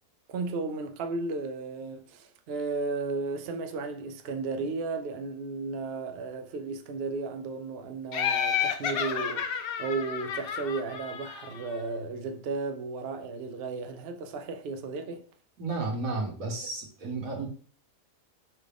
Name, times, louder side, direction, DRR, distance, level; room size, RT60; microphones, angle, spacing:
voice 1, 0.3-15.3, right 3 dB, 60° right, 0.6 m, -34 dB
Laughter, 8.1-11.8, left 8 dB, 60° left, 0.6 m, -31 dB
voice 2, 15.6-17.5, right 3 dB, 85° right, 1.7 m, -32 dB
5.8 x 2.4 x 3.4 m
omnidirectional pair, 1.4 m